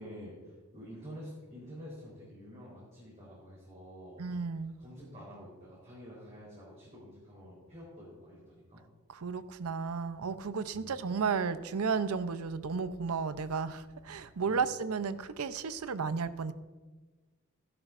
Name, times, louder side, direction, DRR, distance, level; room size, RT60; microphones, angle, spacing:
voice 1, 0.0-4.2 4.8-8.8 10.7-11.0 14.4-14.6, equal, 30° right, -8 dB, 3.8 m, -48 dB
voice 2, 4.2-4.8 9.1-16.5, right 5 dB, 85° right, 13 dB, 0.6 m, -33 dB
16.0 x 12.0 x 2.5 m, 1.3 s
head